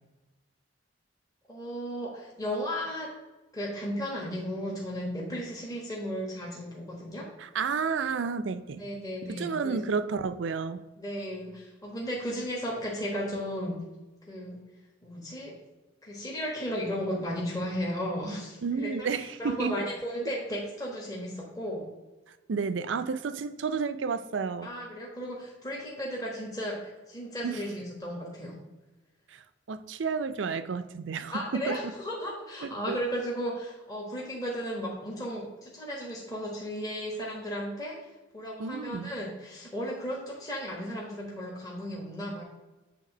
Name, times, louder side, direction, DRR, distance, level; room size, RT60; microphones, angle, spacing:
voice 1, 1.5-3.1 3.5-7.3 8.8-9.8 11.0-13.8 14.3-14.6 15.0-15.5 16.0-21.9 24.6-28.6 31.3-38.0 38.3-42.4, equal, 20° left, -3 dB, 1.3 m, -35 dB
voice 2, 7.4-8.9 9.2-10.8 18.6-19.7 22.5-24.7 27.4-27.6 29.3-29.4 29.7-31.8 32.6-33.0 38.6-39.1, right 5 dB, 70° right, 13 dB, 0.5 m, -31 dB
8.5 x 3.6 x 6.0 m, 1.1 s
head